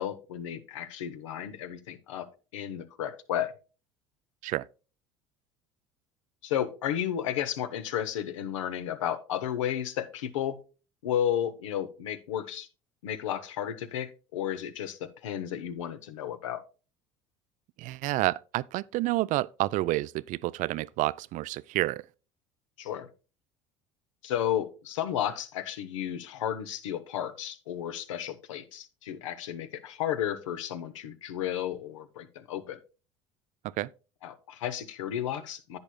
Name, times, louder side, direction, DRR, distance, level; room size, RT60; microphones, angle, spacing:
voice 1, 0.0-2.3 2.5-3.5 6.4-10.6 11.0-12.7 13.0-16.6 22.8-23.1 24.2-32.8 34.2-35.8, left 10 dB, 85° left, 0.8 m, -33 dB
voice 2, 17.8-22.0 33.6-33.9, right 17 dB, 55° right, 0.4 m, -29 dB
10.5 x 8.6 x 2.2 m
hypercardioid pair, 75°, 16 cm